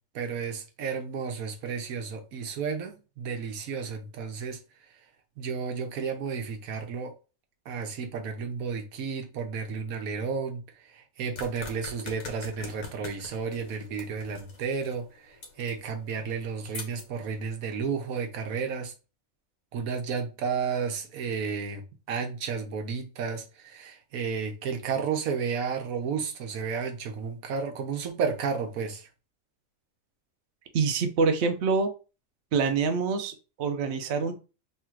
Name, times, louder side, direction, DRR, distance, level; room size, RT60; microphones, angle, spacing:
voice 1, 0.1-4.6 5.4-7.1 7.7-10.6 11.2-18.9 19.7-21.8 22.1-29.1, right 6 dB, 85° right, 1.2 m, -32 dB
sound 1, 11.4-17.5, left 3 dB, 80° left, 1.4 m, -45 dB
voice 2, 30.7-31.9 32.5-34.4, right 4 dB, 60° right, 0.9 m, -26 dB
3.2 x 2.4 x 4.4 m
omnidirectional pair, 1.4 m